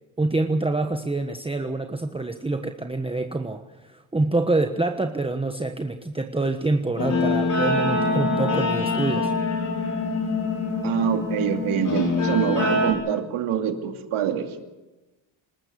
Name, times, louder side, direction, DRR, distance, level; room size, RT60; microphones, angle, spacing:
voice 1, 0.2-9.3, right 2 dB, 10° right, 5 dB, 1.2 m, -26 dB
Guitar, 7.0-12.9, left 3 dB, 40° left, 5.6 m, -24 dB
voice 2, 10.8-14.6, right 9 dB, 85° right, 5 dB, 2.7 m, -25 dB
26.0 x 13.5 x 8.2 m, 1.1 s
cardioid pair, 90°, 49 cm